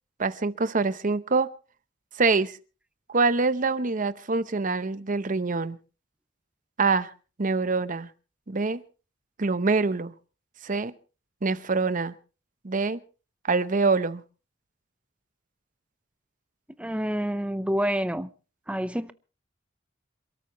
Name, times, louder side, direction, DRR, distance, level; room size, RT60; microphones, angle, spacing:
voice 1, 0.2-1.5 2.1-2.6 3.1-5.8 6.8-7.1 7.4-8.1 8.5-8.8 9.4-10.1 10.6-10.9 11.4-12.1 12.6-13.0 13.4-14.2, right 4 dB, 45° right, 0.8 m, -25 dB
voice 2, 16.8-18.3 18.7-19.1, equal, 5° right, 0.7 m, -28 dB
27.5 x 13.0 x 3.0 m
head